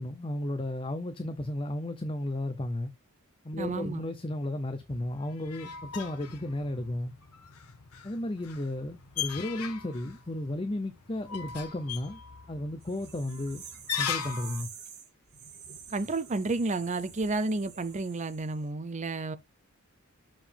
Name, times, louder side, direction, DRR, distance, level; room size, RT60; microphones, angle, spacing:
voice 1, 0.0-2.9 3.4-7.1 8.0-12.2 12.5-13.6 14.0-14.7, left 1 dB, 25° left, 0.6 m, -34 dB
voice 2, 3.6-4.0 15.9-19.4, right 3 dB, 30° right, 0.6 m, -31 dB
sound 1, 4.9-14.6, left 8 dB, 90° left, 1.1 m, -39 dB
sound 2, 12.8-18.6, right 7 dB, 45° right, 2.2 m, -48 dB
7.0 x 5.0 x 3.5 m
head